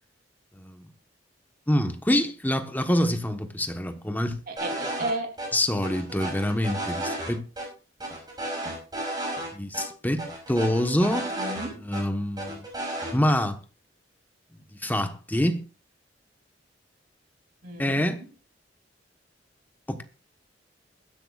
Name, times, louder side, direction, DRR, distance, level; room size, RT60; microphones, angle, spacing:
voice 1, 0.6-0.9 1.7-4.4 5.5-7.4 9.5-11.3 11.8-12.6 13.1-13.6 14.8-15.6 17.8-18.2 19.9-20.0, left 1 dB, 10° left, 1.2 m, -26 dB
voice 2, 4.5-5.3 11.1-11.9 17.6-18.3, right 2 dB, 50° right, 3.2 m, -34 dB
sound 1, 4.6-5.1 5.4-5.5 5.8-7.3 7.6-7.7 8.0-9.5 9.7-9.9 10.2-12.0 12.4-13.1, right 1 dB, 25° right, 5.9 m, -33 dB
21.5 x 10.5 x 2.5 m
head